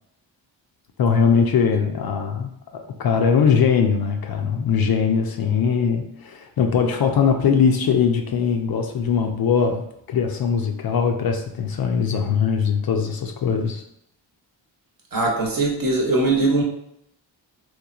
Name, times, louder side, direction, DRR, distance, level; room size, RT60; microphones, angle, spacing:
voice 1, 1.0-2.5 3.0-13.8, left 6 dB, 50° left, 4 dB, 0.5 m, -21 dB
voice 2, 15.1-16.6, right 2 dB, 45° right, 0 dB, 0.9 m, -20 dB
3.0 x 2.2 x 2.4 m, 0.74 s
cardioid pair, 50°, 47 cm